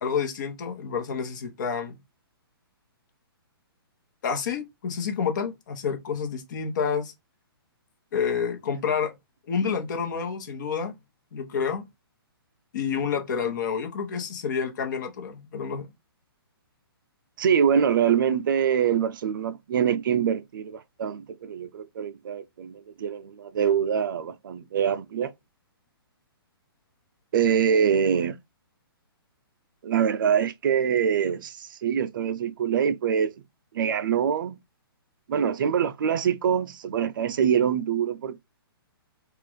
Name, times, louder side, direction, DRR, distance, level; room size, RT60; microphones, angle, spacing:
voice 1, 0.0-1.9 4.2-7.1 8.1-9.1 9.5-10.9 11.3-11.8 12.7-15.9, left 6 dB, 50° left, 1.0 m, -29 dB
voice 2, 17.4-25.3 27.3-28.4 29.8-33.3 33.7-34.6 35.3-38.4, right 8 dB, 55° right, 0.4 m, -24 dB
3.7 x 2.4 x 3.1 m
hypercardioid pair, 155°, 13 cm